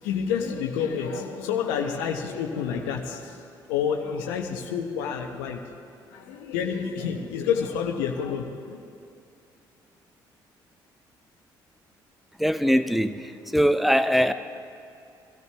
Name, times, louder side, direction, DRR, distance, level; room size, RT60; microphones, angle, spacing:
voice 1, 0.0-5.6 6.1-8.8, left 7 dB, 80° left, 3 dB, 1.0 m, -29 dB
voice 2, 12.4-14.3, equal, ahead, 11 dB, 0.8 m, -22 dB
21.0 x 13.5 x 3.4 m, 2.6 s
hypercardioid pair, 50°, 11 cm